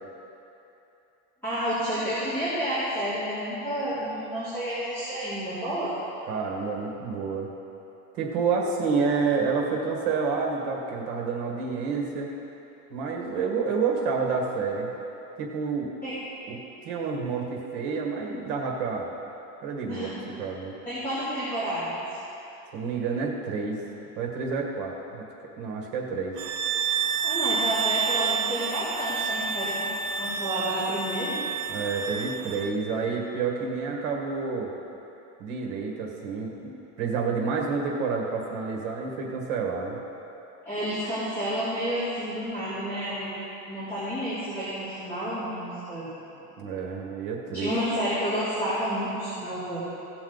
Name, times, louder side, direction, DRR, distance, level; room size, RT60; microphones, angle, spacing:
voice 1, 1.4-6.0 16.0-16.1 19.9-20.1 20.8-22.0 27.2-29.9 30.2-31.4 40.6-43.3 43.7-46.1 47.5-49.8, equal, 5° left, -16 dB, 2.8 m, -30 dB
voice 2, 6.3-7.5 8.1-12.3 12.9-14.9 15.4-15.9 16.5-19.1 19.6-20.1 20.4-20.8 22.7-23.8 24.2-25.2 25.6-26.4 31.7-34.7 35.4-36.7 37.0-40.0 46.6-47.7, right 5 dB, 55° right, 0 dB, 1.8 m, -29 dB
sound 1, 26.4-32.8, right 6 dB, 90° right, 0.9 m, -29 dB
17.0 x 7.2 x 4.0 m, 3.0 s
cardioid pair, 175°, 46 cm